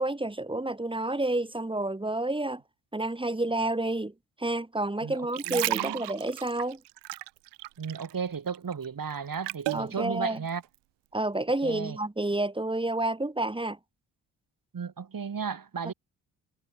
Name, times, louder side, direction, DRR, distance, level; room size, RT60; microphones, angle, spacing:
voice 1, 0.0-2.6 2.9-4.1 4.4-6.8 9.7-10.4 11.1-13.8 15.8-15.9, right 2 dB, 10° right, 1.5 m, -29 dB
sound 1, 5.1-8.2 8.5-9.9 10.5-10.6, right 18 dB, 60° right, 0.5 m, -33 dB
voice 2, 5.5-6.0 7.8-10.6 11.6-12.0 14.7-15.9, right 6 dB, 45° right, 3.1 m, -34 dB
hypercardioid pair, 45°, 47 cm